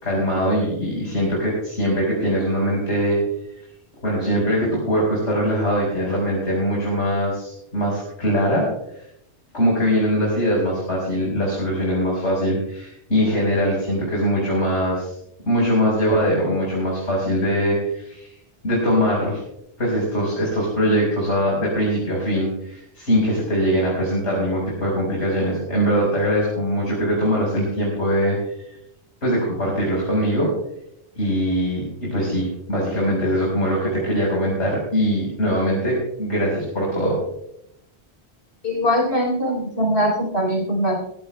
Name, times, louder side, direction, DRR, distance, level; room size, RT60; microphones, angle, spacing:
voice 1, 0.0-3.2 4.0-8.7 9.5-15.1 15.4-18.3 18.6-19.4 19.8-28.7 29.2-30.5 31.2-37.2, equal, 85° left, -4 dB, 4.9 m, -22 dB
voice 2, 38.6-40.9, equal, 65° left, 0 dB, 4.2 m, -21 dB
21.0 x 16.0 x 2.2 m, 0.77 s
omnidirectional pair, 1.2 m